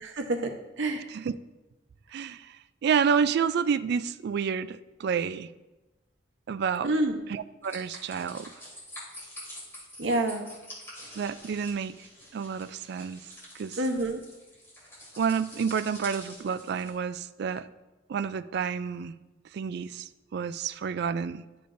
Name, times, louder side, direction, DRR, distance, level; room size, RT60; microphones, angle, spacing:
voice 1, 0.0-1.1 6.8-7.2 10.0-10.5 13.8-14.2, right 2 dB, 75° right, 4 dB, 0.9 m, -28 dB
voice 2, 2.1-2.6 2.8-5.5 6.5-6.9 7.3-8.5 11.2-11.9 12.3-13.2 13.5-13.8 15.2-17.7 18.1-19.1 19.5-21.4, right 6 dB, 55° right, 14 dB, 0.3 m, -29 dB
sound 1, 7.6-16.9, left 1 dB, 15° left, 2.7 m, -46 dB
11.5 x 6.8 x 2.6 m, 1.1 s
head